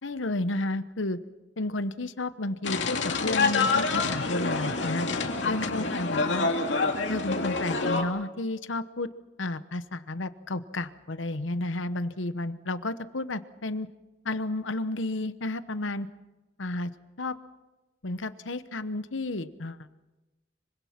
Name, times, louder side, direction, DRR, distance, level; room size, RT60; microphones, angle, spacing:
voice 1, 0.0-1.2 1.6-5.1 5.5-6.5 7.1-9.1 9.4-13.9 14.2-16.1 16.6-16.9 17.2-17.4 18.0-19.9, left 2 dB, 90° left, 12 dB, 1.1 m, -32 dB
sound 1, 2.6-8.0, left 3 dB, 70° left, 2.6 m, -27 dB
25.5 x 24.5 x 5.9 m, 1.1 s
head